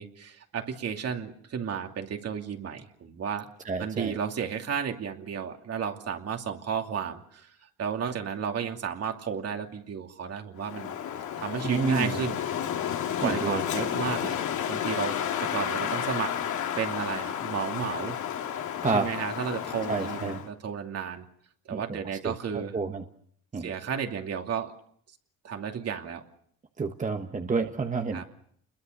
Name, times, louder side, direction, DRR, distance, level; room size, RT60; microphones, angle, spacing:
voice 1, 0.0-3.5 3.8-7.5 7.8-10.9 11.4-12.6 13.2-14.4 14.7-16.3 16.8-18.2 18.9-21.3 21.7-22.8 23.6-24.7 25.4-26.2 28.1-28.2, right 7 dB, 50° right, 4 dB, 2.8 m, -33 dB
voice 2, 3.6-4.1 11.6-12.2 13.2-13.6 18.8-19.1 19.9-20.4 21.7-23.0 23.5-23.7 26.8-28.2, right 4 dB, 25° right, 5 dB, 1.3 m, -30 dB
Wind, 10.6-20.5, left 9 dB, 70° left, 2.6 m, -31 dB
29.0 x 22.0 x 6.7 m, 0.65 s
cardioid pair, 135°, 31 cm